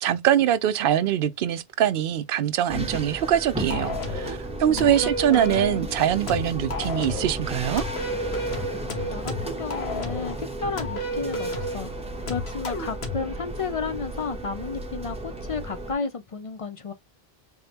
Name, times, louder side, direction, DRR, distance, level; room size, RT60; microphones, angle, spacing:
voice 1, 0.0-7.8, right 10 dB, 65° right, 0.7 m, -23 dB
sound 1, 2.7-15.9, right 1 dB, 5° right, 0.7 m, -34 dB
sound 2, 3.7-4.4 4.8-5.8 6.3-7.4 7.8-10.4 10.8-11.8 12.3-13.3, left 1 dB, 90° left, 1.3 m, -32 dB
voice 2, 4.7-5.9 8.8-11.9 12.3-16.9, left 4 dB, 50° left, 0.4 m, -33 dB
4.0 x 3.4 x 2.8 m
omnidirectional pair, 1.0 m